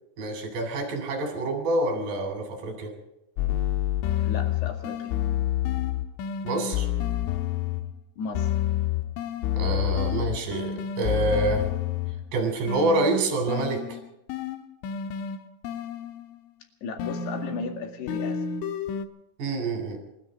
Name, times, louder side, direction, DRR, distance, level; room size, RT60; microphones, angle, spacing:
voice 1, 0.2-2.9 6.4-6.9 9.6-11.6 12.3-14.0 19.4-20.0, right 2 dB, 45° right, 3 dB, 4.7 m, -27 dB
sound 1, 3.4-8.0 8.3-12.3 12.7-16.4 17.0-19.1, left 11 dB, 85° left, 3.5 m, -29 dB
voice 2, 4.2-5.2 8.2-8.5 16.8-18.4, left 5 dB, 60° left, 4 dB, 4.0 m, -35 dB
28.5 x 13.5 x 3.8 m, 0.89 s
omnidirectional pair, 5.6 m